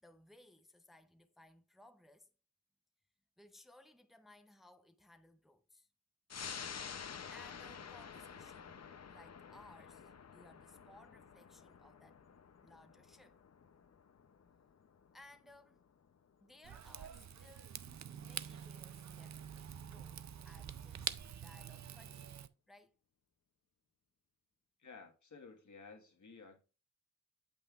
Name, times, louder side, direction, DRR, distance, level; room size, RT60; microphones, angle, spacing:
voice 1, 0.0-2.3 3.4-5.9 7.3-12.2 12.6-13.4 15.1-15.8 16.4-17.8 18.1-22.9, left 1 dB, ahead, 0.7 m, -62 dB
sound 1, 6.3-17.3 17.7-17.8, left 6 dB, 60° left, 0.6 m, -51 dB
Rain / Fire, 16.6-22.5, right 8 dB, 65° right, 0.5 m, -46 dB
voice 2, 24.8-26.6, left 4 dB, 75° left, 1.6 m, -55 dB
8.7 x 7.8 x 2.4 m
wide cardioid pair, 85°, 30 cm